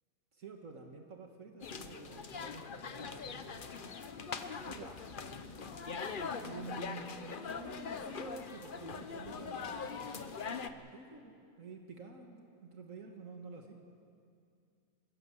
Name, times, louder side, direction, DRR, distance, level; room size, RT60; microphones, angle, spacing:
voice 1, 0.3-3.6 4.6-5.5 6.4-10.1 10.6-13.8, right 4 dB, 75° right, 2 dB, 2.1 m, -50 dB
sound 1, 1.6-10.7, left 5 dB, 45° left, 1.0 m, -42 dB
28.0 x 15.5 x 7.6 m, 2.4 s
omnidirectional pair, 1.4 m